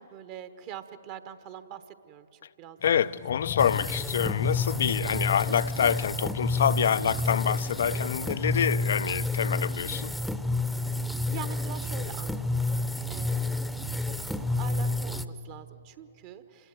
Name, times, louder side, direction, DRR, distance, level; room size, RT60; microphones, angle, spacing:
voice 1, 0.0-2.9 10.9-12.7 13.1-13.6 14.0-16.7, right 9 dB, 40° right, 1.1 m, -44 dB
voice 2, 2.8-10.1, left 8 dB, 60° left, 0.5 m, -27 dB
sound 1, 2.8-8.9, left 13 dB, 30° left, 0.9 m, -40 dB
sound 2, 3.6-15.3, left 2 dB, ahead, 0.8 m, -30 dB
27.0 x 19.5 x 9.1 m
figure-of-eight pair, 120°, 0 cm